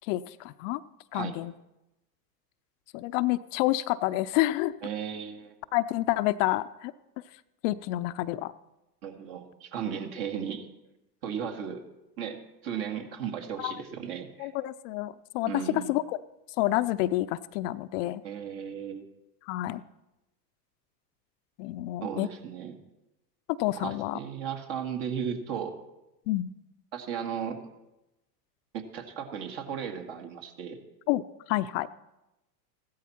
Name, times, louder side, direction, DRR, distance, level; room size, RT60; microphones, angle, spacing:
voice 1, 0.1-0.8 1.1-1.5 2.9-4.7 5.7-6.9 7.6-8.5 13.6-13.7 14.4-16.2 16.6-18.2 19.5-19.8 21.6-22.3 23.5-24.2 26.3-26.5 31.1-31.2 31.5-31.9, left 16 dB, 50° left, 13 dB, 0.5 m, -28 dB
voice 2, 4.8-5.5 9.0-10.7 11.2-11.8 12.2-14.5 15.5-15.9 18.2-19.1 22.0-22.8 23.8-25.8 26.9-27.6 28.7-30.8, right 8 dB, 55° right, 5 dB, 2.1 m, -35 dB
15.5 x 12.5 x 4.2 m, 0.95 s
hypercardioid pair, 100°, 50 cm